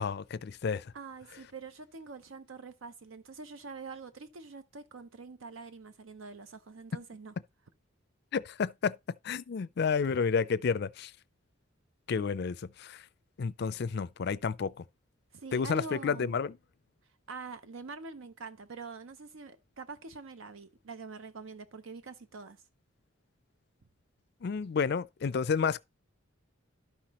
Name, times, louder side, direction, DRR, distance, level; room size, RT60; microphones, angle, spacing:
voice 1, 0.0-0.9 8.3-9.0 9.2-11.1 12.1-13.0 13.4-14.7 15.5-16.5 24.4-25.8, left 5 dB, 55° left, 0.4 m, -30 dB
voice 2, 0.9-7.3 15.3-16.4 17.3-22.6, right 4 dB, 80° right, 0.7 m, -45 dB
12.0 x 5.9 x 3.0 m
head